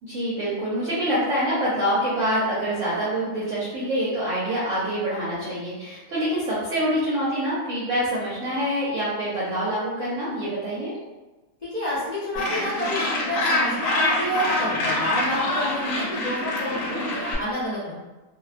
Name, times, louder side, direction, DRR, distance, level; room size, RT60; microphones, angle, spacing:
voice 1, 0.1-10.9 16.9-17.0, equal, 65° right, -8 dB, 0.9 m, -26 dB
voice 2, 11.6-17.9, equal, 65° left, -10 dB, 0.4 m, -29 dB
Gull seagull, 12.4-17.4, left 1 dB, 85° left, 1.1 m, -25 dB
2.6 x 2.2 x 2.4 m, 1.1 s
omnidirectional pair, 1.6 m